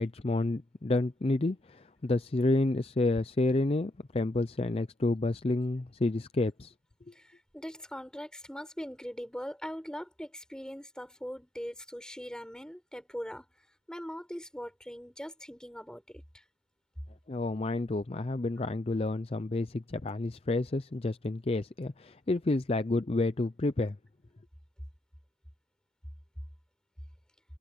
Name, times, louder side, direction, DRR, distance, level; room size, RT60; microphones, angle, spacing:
voice 1, 0.0-6.7 17.3-24.0, left 2 dB, 35° left, 0.5 m, -30 dB
voice 2, 7.1-13.5 13.9-16.4, equal, 5° left, 7.2 m, -41 dB
head